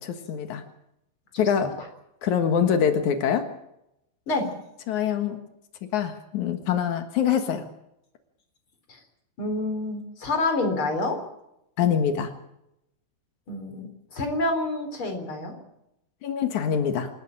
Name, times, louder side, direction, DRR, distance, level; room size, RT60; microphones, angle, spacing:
voice 1, 0.3-0.6 1.4-1.7 2.2-3.5 4.9-5.4 5.9-7.6 11.8-12.3 16.2-17.1, left 8 dB, 85° left, 7 dB, 1.6 m, -24 dB
voice 2, 9.4-11.2 13.5-15.5, left 2 dB, 30° left, 6 dB, 3.7 m, -28 dB
27.5 x 13.0 x 8.9 m, 0.83 s
omnidirectional pair, 6.0 m